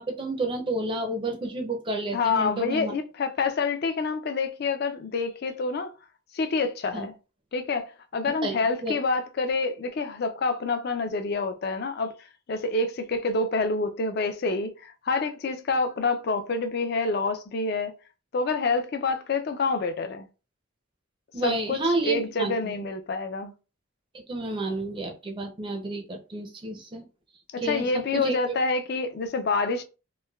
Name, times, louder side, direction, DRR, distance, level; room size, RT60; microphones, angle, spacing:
voice 1, 0.0-2.9 6.9-7.1 8.4-9.0 21.3-22.7 24.1-27.0 27.6-28.5, right 2 dB, 25° right, 0.4 m, -30 dB
voice 2, 2.1-5.9 6.3-7.1 7.5-12.1 12.5-17.9 18.3-20.3 21.4-23.5 27.5-29.8, left 3 dB, 50° left, 0.4 m, -27 dB
3.1 x 2.1 x 2.2 m
head